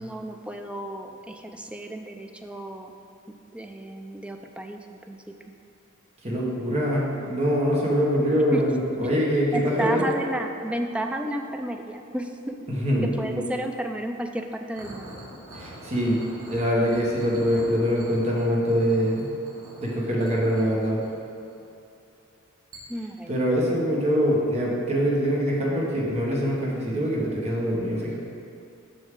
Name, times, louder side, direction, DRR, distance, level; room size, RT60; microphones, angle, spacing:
voice 1, 0.0-2.9 3.5-4.8 5.1-5.3 8.5-8.6 9.5-12.6 13.0-15.2 22.9-23.4, right 1 dB, 5° right, 4 dB, 0.3 m, -32 dB
voice 2, 6.2-10.0 12.8-13.4 15.5-16.2 16.4-19.3 19.8-21.0 23.3-28.2, equal, 30° right, -4 dB, 1.2 m, -24 dB
sound 1, 14.7-21.8 22.7-22.8, right 1 dB, 85° right, 1.4 m, -44 dB
6.6 x 6.2 x 3.7 m, 2.6 s
head